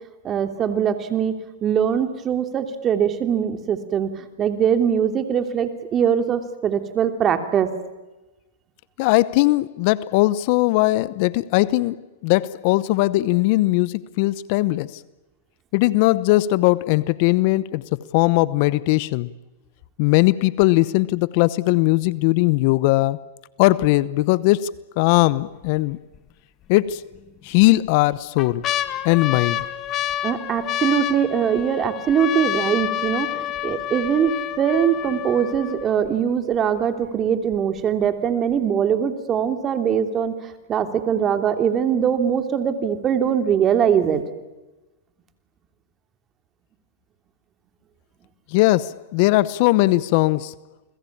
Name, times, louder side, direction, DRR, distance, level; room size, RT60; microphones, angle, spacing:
voice 1, 0.2-4.1 4.4-7.7 30.2-44.2, right 8 dB, 25° right, 3.0 m, -22 dB
voice 2, 9.0-15.0 15.7-19.3 20.0-23.2 23.6-26.0 26.7-27.0 27.4-28.6 29.0-29.6 48.5-50.5, left 19 dB, 50° left, 0.8 m, -19 dB
sound 1, 25.4-25.7 26.1-26.2 27.1-27.7 28.1-36.1 36.8-36.9 37.1-37.5 38.0-38.1, left 13 dB, 35° left, 1.7 m, -28 dB
29.5 x 21.5 x 8.7 m
hypercardioid pair, 120°, 0 cm